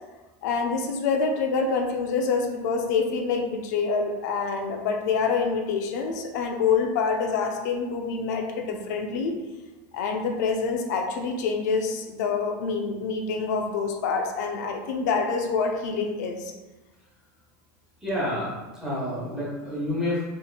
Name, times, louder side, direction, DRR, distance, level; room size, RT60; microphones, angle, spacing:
voice 1, 0.4-9.4 9.9-16.5, left 5 dB, 80° left, 2 dB, 0.5 m, -26 dB
voice 2, 18.0-18.5 18.8-20.2, left 1 dB, 5° right, -8 dB, 1.1 m, -28 dB
3.6 x 2.9 x 2.4 m, 1.1 s
supercardioid pair, 165°, 9 cm